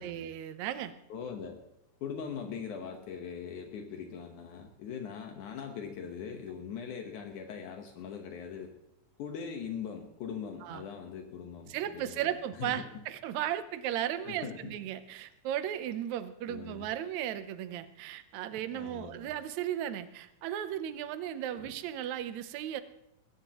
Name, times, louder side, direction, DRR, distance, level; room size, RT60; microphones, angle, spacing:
voice 1, 0.0-0.9 10.6-10.8 11.7-22.8, right 11 dB, 70° right, 11 dB, 2.0 m, -36 dB
voice 2, 1.1-1.6 2.0-8.7 9.2-13.0 14.2-14.8 16.5-16.9 18.7-19.3 21.5-21.7, left 7 dB, 75° left, 3 dB, 2.6 m, -41 dB
21.0 x 17.5 x 3.0 m, 0.85 s
omnidirectional pair, 3.6 m